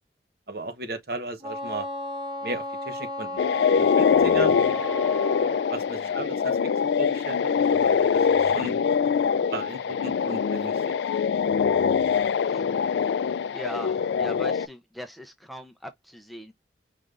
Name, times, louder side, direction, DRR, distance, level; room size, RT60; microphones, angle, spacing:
voice 1, 0.5-1.9 2.4-3.4 3.7-4.6 5.7-6.6 7.0-8.8 9.5-10.7, right 2 dB, 55° right, 0.9 m, -35 dB
Wind instrument woodwind instrument, 1.4-5.7, left 1 dB, 25° right, 0.9 m, -34 dB
sound 1, 3.4-14.7, left 6 dB, 70° left, 0.3 m, -23 dB
voice 2, 12.4-13.2 13.5-16.5, equal, ahead, 0.4 m, -40 dB
5.1 x 3.3 x 2.4 m
head